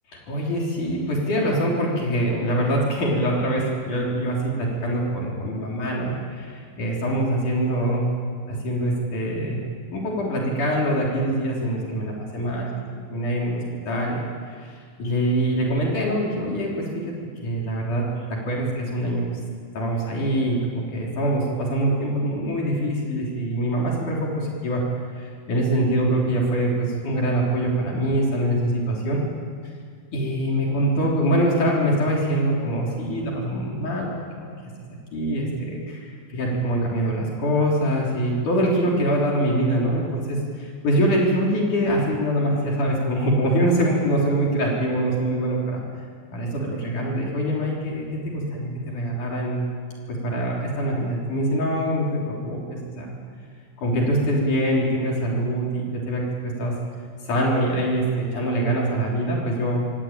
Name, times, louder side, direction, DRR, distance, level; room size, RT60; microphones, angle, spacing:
voice 1, 0.1-8.1 8.5-9.6 9.9-12.7 13.0-14.7 15.0-17.0 17.4-18.0 18.5-19.4 19.7-24.8 25.2-29.2 30.1-34.1 34.4-34.5 34.9-45.8 46.3-49.7 50.1-53.1 53.8-56.7 57.3-59.8, right 1 dB, 65° left, -3 dB, 5.1 m, -24 dB
26.0 x 17.5 x 9.0 m, 2.1 s
omnidirectional pair, 3.9 m